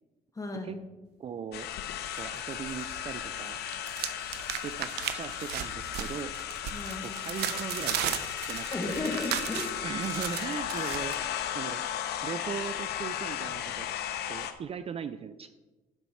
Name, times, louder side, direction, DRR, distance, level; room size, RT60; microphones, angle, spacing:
voice 1, 0.3-0.9 6.7-7.1 8.7-9.8, left 2 dB, 20° left, 3 dB, 1.7 m, -35 dB
voice 2, 1.2-1.7 2.1-3.6 4.6-6.3 7.0-8.2 8.5-8.9 9.8-11.8 12.2-13.9 14.3-15.5, right 7 dB, 35° right, 12 dB, 0.4 m, -39 dB
sound 1, 1.5-14.5, left 10 dB, 75° left, 0.8 m, -35 dB
sound 2, 2.2-3.0 3.3-11.2, right 11 dB, 80° right, 0.7 m, -36 dB
11.0 x 4.5 x 5.7 m, 1.2 s
cardioid pair, 110°, 17 cm